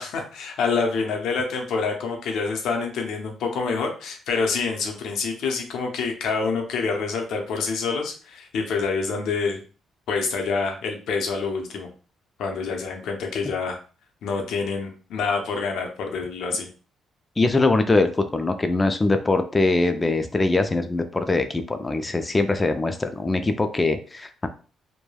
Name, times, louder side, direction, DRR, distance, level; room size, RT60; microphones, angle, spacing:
voice 1, 0.0-9.6 10.1-11.9 12.4-13.8 14.2-16.7, left 4 dB, 80° left, 3 dB, 0.6 m, -27 dB
voice 2, 17.4-24.5, left 2 dB, 20° left, 8 dB, 0.4 m, -22 dB
3.2 x 2.2 x 2.3 m, 0.38 s
cardioid pair, 90°, 0 cm